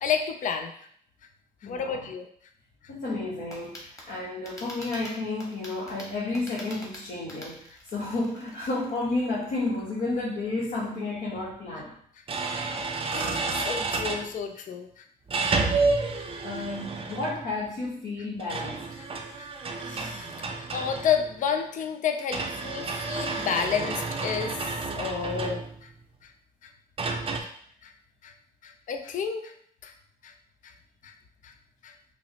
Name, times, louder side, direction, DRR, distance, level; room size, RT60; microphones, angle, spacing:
voice 1, 0.0-0.7 1.6-2.3 13.1-15.0 15.8-15.9 16.2-16.3 19.4-19.5 19.8-20.3 20.6-25.9 26.6-26.7 27.0-27.1 27.4-27.5 27.8-27.9 28.2-28.3 28.6-29.5 29.8-29.9 30.2-30.3 30.6-30.7 31.0-31.1 31.4-31.5 31.8-31.9, left 7 dB, 55° left, 6 dB, 0.4 m, -31 dB
voice 2, 1.6-2.1 2.9-7.6 7.9-11.9 16.4-18.8, left 2 dB, 70° left, -6 dB, 1.1 m, -31 dB
sound 1, 3.5-10.2, left 1 dB, 20° left, 1.3 m, -47 dB
sound 2, 11.4-11.5 12.3-14.3 15.3-17.5 18.4-21.4 22.3-25.9 27.0-27.4, right 3 dB, 35° right, 0.5 m, -30 dB
5.5 x 2.1 x 2.8 m, 0.63 s
cardioid pair, 75°, 16 cm